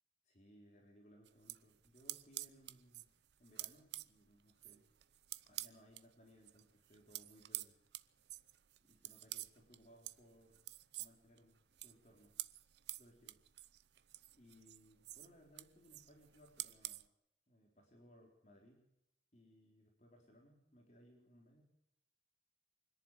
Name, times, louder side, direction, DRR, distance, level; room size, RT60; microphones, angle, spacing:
voice 1, 0.2-3.1 3.4-4.9 5.5-7.8 8.8-10.7 11.0-12.4 13.0-13.4 14.3-17.1 17.5-18.9 19.3-21.6, equal, 40° left, 0 dB, 4.2 m, -65 dB
sound 1, 1.3-6.0 6.4-17.1, right 15 dB, 80° right, 0.7 m, -49 dB
25.0 x 11.0 x 9.7 m, 0.81 s
head